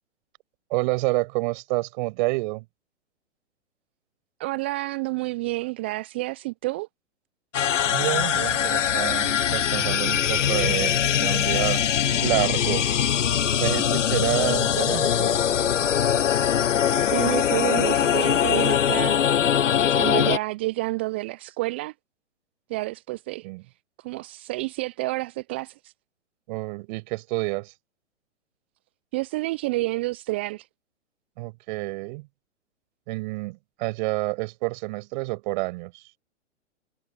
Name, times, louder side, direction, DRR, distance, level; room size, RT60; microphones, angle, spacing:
voice 1, 0.7-2.6 7.9-11.8 12.2-12.9 13.6-15.4 23.4-23.6 26.5-27.7 31.4-32.3 33.1-36.0, right 24 dB, 40° right, 5.7 m, -28 dB
voice 2, 4.4-6.9 17.0-19.2 20.0-21.9 22.7-23.5 24.0-25.9 29.1-30.7, right 20 dB, 10° right, 0.3 m, -29 dB
sound 1, 7.5-20.4, left 9 dB, 85° left, 0.5 m, -22 dB
figure-of-eight pair, 115°, 36 cm